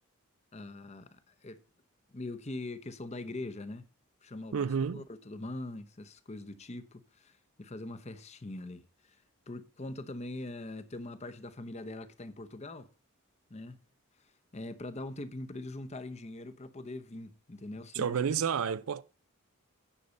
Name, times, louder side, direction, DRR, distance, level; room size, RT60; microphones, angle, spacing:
voice 1, 0.5-1.6 2.1-3.8 4.2-9.2 9.5-12.9 13.5-13.8 14.5-18.3, left 2 dB, 30° left, 0.8 m, -42 dB
voice 2, 4.5-5.0 17.9-19.0, right 7 dB, 75° right, 0.5 m, -30 dB
10.0 x 5.4 x 6.5 m
head